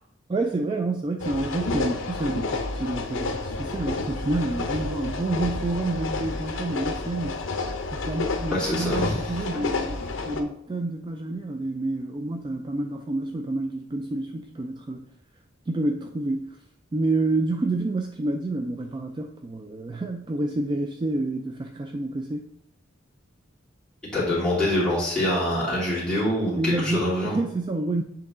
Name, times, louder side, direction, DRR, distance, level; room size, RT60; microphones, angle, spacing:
voice 1, 0.3-7.5 7.9-15.1 15.7-16.6 16.9-22.5 26.6-28.0, right 2 dB, 25° right, 4 dB, 0.3 m, -28 dB
sound 1, 1.2-10.4, left 3 dB, 70° left, 0.7 m, -30 dB
voice 2, 8.5-9.1 24.1-27.3, left 1 dB, 5° left, -9 dB, 2.7 m, -25 dB
7.8 x 3.9 x 3.7 m, 0.76 s
head